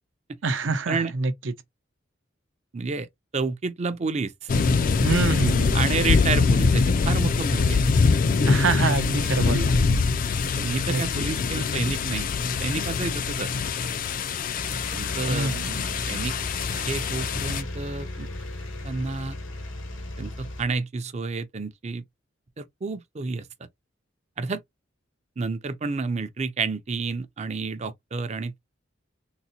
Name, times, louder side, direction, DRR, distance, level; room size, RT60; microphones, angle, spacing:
voice 1, 0.4-1.3 5.0-5.8 8.5-9.8 10.9-11.0 15.3-15.8, right 3 dB, 75° right, 0.7 m, -25 dB
voice 2, 2.7-3.1 3.3-4.3 5.7-7.9 10.6-13.5 14.9-15.5 16.1-16.3 16.7-18.3 18.8-19.4 20.2-22.0 22.6-23.5 24.4-24.6 25.4-28.6, right 4 dB, 35° right, 0.5 m, -30 dB
sound 1, 4.5-17.6, left 4 dB, 45° left, 0.4 m, -24 dB
sound 2, 14.5-20.6, left 1 dB, 80° left, 1.1 m, -35 dB
3.8 x 2.1 x 2.7 m
head